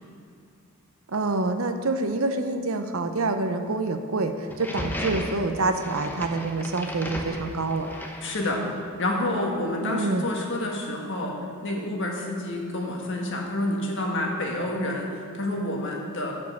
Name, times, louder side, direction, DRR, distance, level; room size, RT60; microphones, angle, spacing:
voice 1, 1.1-7.9 9.8-10.2, right 3 dB, 65° right, 7 dB, 0.7 m, -27 dB
sound 1, 4.5-8.8, left 1 dB, 10° left, 0.8 m, -35 dB
voice 2, 8.2-8.6 9.0-16.3, left 1 dB, 60° left, 0 dB, 1.6 m, -28 dB
10.5 x 5.4 x 6.9 m, 2.4 s
head